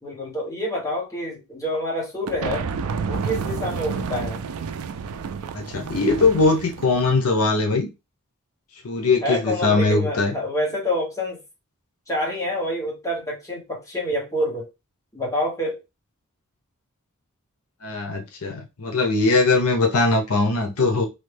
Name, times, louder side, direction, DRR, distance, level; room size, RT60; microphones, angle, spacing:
voice 1, 0.0-2.7 3.1-4.4 9.2-11.4 12.1-14.7 15.1-15.8, equal, 15° left, 1.1 m, -27 dB
sound 1, 2.3-7.3, right 5 dB, 75° right, 0.4 m, -30 dB
voice 2, 5.5-7.9 8.8-10.3 17.8-21.1, left 3 dB, 80° left, 0.7 m, -21 dB
3.2 x 2.2 x 3.3 m
head